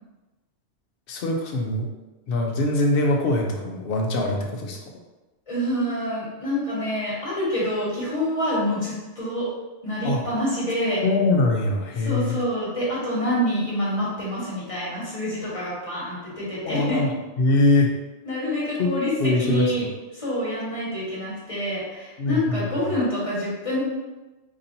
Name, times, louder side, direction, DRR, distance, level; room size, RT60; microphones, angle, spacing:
voice 1, 1.1-1.9 2.3-4.8 10.0-10.2 11.0-12.3 16.6-17.1 17.4-17.9 18.8-18.9 19.2-19.7 22.2-22.7, left 2 dB, 60° left, 2 dB, 0.7 m, -22 dB
voice 2, 5.5-9.5 9.8-11.0 12.0-17.0 18.2-23.8, equal, 30° left, -8 dB, 1.3 m, -27 dB
4.1 x 2.9 x 2.6 m, 1.1 s
omnidirectional pair, 1.2 m